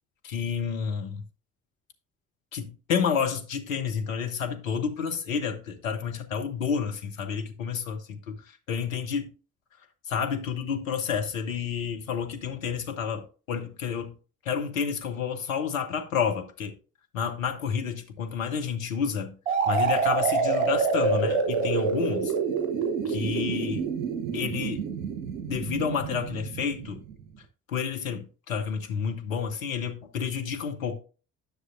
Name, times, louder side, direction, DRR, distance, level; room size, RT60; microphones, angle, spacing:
voice 1, 0.2-1.2 2.5-8.4 8.7-9.3 10.1-14.1 14.4-16.7 17.1-19.4 19.7-22.3 23.1-23.9 24.3-24.9 25.5-27.0 27.7-30.9, left 6 dB, 75° left, 1.0 m, -30 dB
sound 1, 19.5-27.1, right 5 dB, 70° right, 1.1 m, -27 dB
10.0 x 6.3 x 2.6 m
figure-of-eight pair, 45°, 40 cm